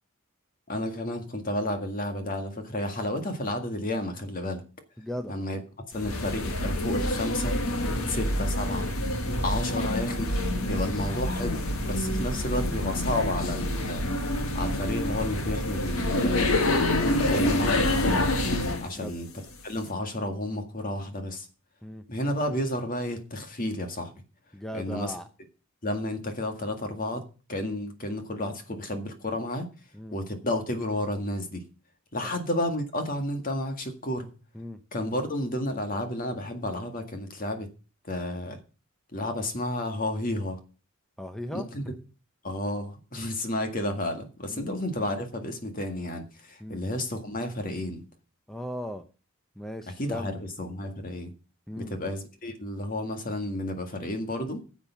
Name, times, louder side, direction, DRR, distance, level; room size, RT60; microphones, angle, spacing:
voice 1, 0.7-4.6 5.3-5.6 5.9-7.6 8.1-8.9 9.4-10.3 10.7-18.3 18.8-19.3 19.6-21.5 22.1-24.1 24.7-25.1 25.8-27.2 27.5-29.7 30.1-31.6 32.1-34.3 34.9-37.7 38.1-38.6 39.1-40.6 41.5-41.8 42.4-48.0 50.0-51.3 51.8-54.7, left 1 dB, 40° left, 1.9 m, -31 dB
voice 2, 5.0-5.3 7.9-8.1 9.2-9.5 10.6-10.9 18.9-19.1 21.8-22.0 24.5-25.3 29.9-30.2 34.5-34.8 41.2-41.7 44.5-44.7 46.6-46.8 48.5-49.0 49.6-50.3 51.7-51.9, equal, ahead, 0.7 m, -37 dB
sound 1, 5.9-18.9, left 1 dB, 80° left, 1.7 m, -27 dB
10.0 x 7.2 x 7.0 m
head